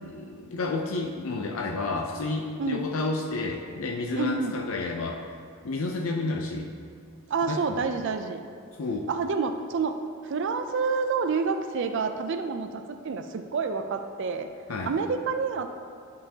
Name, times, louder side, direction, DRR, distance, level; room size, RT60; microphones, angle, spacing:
voice 1, 0.0-5.2 5.6-6.7 7.5-7.9 8.8-9.1 14.7-15.0, left 3 dB, 75° left, 1 dB, 0.5 m, -30 dB
voice 2, 4.1-4.5 7.3-8.4 9.1-10.0 10.2-14.5 14.9-15.7, right 5 dB, 60° right, 7 dB, 0.4 m, -28 dB
11.0 x 5.5 x 2.8 m, 2.3 s
head